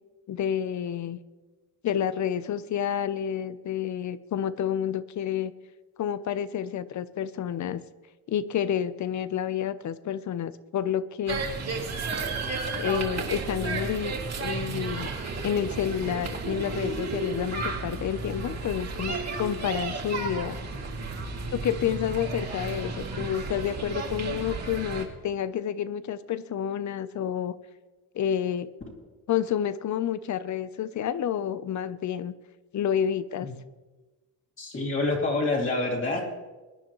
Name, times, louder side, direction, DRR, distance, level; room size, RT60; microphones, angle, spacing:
voice 1, 0.3-1.2 1.8-5.5 6.0-7.8 8.3-11.4 12.8-15.1 15.4-20.6 21.5-27.6 28.1-28.7 29.3-32.3 32.7-33.5, left 9 dB, 50° left, 15 dB, 0.7 m, -29 dB
sound 1, 11.3-25.1, right 3 dB, 45° right, 2.3 m, -33 dB
voice 2, 34.6-36.3, left 2 dB, 35° left, -3 dB, 2.6 m, -27 dB
22.0 x 10.0 x 3.1 m, 1.2 s
cardioid pair, 105°, 38 cm